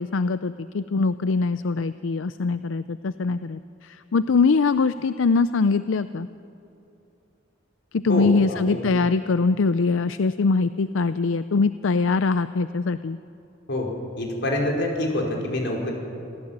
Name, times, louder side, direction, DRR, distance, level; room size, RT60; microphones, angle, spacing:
voice 1, 0.0-6.3 7.9-13.2, left 4 dB, 85° left, 13 dB, 0.5 m, -23 dB
voice 2, 8.1-8.8 13.7-13.9 14.2-15.9, left 1 dB, 65° left, 0 dB, 5.0 m, -26 dB
27.0 x 16.0 x 8.8 m, 2.9 s
head